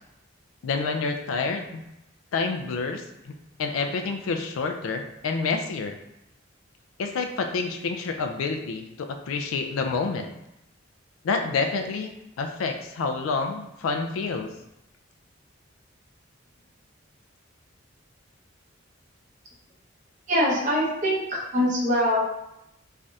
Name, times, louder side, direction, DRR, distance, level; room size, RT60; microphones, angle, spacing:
voice 1, 0.6-1.8 2.3-3.3 3.6-6.0 7.0-10.3 11.2-12.1 12.4-14.5, left 4 dB, 85° left, 5 dB, 0.4 m, -28 dB
voice 2, 20.3-22.3, equal, 40° right, -3 dB, 0.7 m, -23 dB
3.2 x 2.4 x 2.6 m, 0.84 s
head